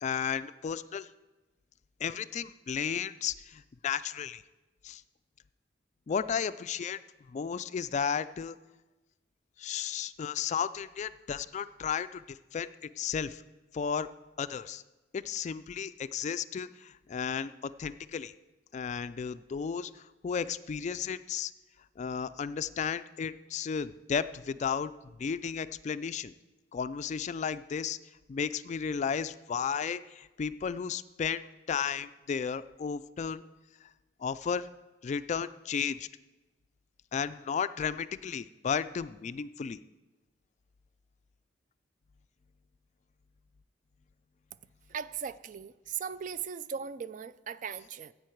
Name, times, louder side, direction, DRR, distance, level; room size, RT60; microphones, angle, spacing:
voice 1, 0.0-1.1 2.0-4.4 4.8-5.0 6.1-7.0 7.3-8.6 9.6-12.2 12.5-12.7 13.0-13.4 13.7-14.1 14.4-14.8 15.1-18.3 18.7-19.9 20.2-21.5 22.0-24.9 25.2-26.3 26.7-28.0 28.3-31.4 31.7-33.4 34.2-34.7 35.0-36.1 37.1-39.8, left 7 dB, 40° left, 0.3 m, -33 dB
voice 2, 44.9-48.1, right 7 dB, 45° right, 0.3 m, -38 dB
15.0 x 8.5 x 4.5 m
head